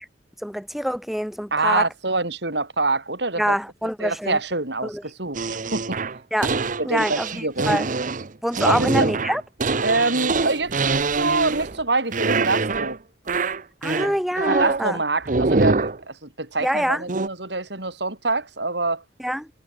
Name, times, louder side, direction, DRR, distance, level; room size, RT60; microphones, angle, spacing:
voice 1, 0.4-1.8 3.4-4.4 4.8-5.0 6.3-6.5 6.8-7.9 8.4-9.4 13.8-15.0 16.6-17.0 19.2-19.5, equal, ahead, 1.4 m, -25 dB
voice 2, 1.5-3.6 4.0-5.4 5.7-6.0 6.8-7.7 8.6-9.1 9.8-13.0 14.5-19.0, right 3 dB, 65° right, 4.4 m, -25 dB
sound 1, 5.3-11.8 12.1-13.0 13.3-14.9 15.3-16.0 17.1-17.3, right 3 dB, 45° right, 0.9 m, -24 dB
head